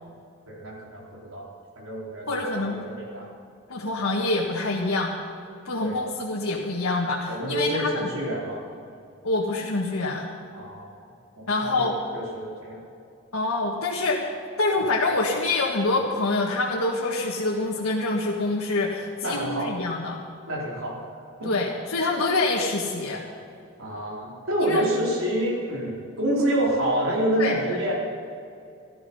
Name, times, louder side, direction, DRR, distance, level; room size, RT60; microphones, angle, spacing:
voice 1, 0.5-1.5 1.8-3.3 5.8-6.0 7.3-8.6 10.5-10.9 11.4-12.8 19.2-19.8 20.5-21.0 21.4-21.5 23.8-27.9, right 1 dB, 80° right, -4 dB, 4.4 m, -28 dB
voice 2, 2.3-2.7 3.7-5.1 5.7-8.1 9.2-10.3 11.5-11.9 13.3-14.2 14.6-20.2 21.4-23.2 24.6-24.9 27.4-27.8, left 2 dB, 90° left, -3 dB, 1.8 m, -26 dB
15.0 x 13.5 x 5.6 m, 2.5 s
head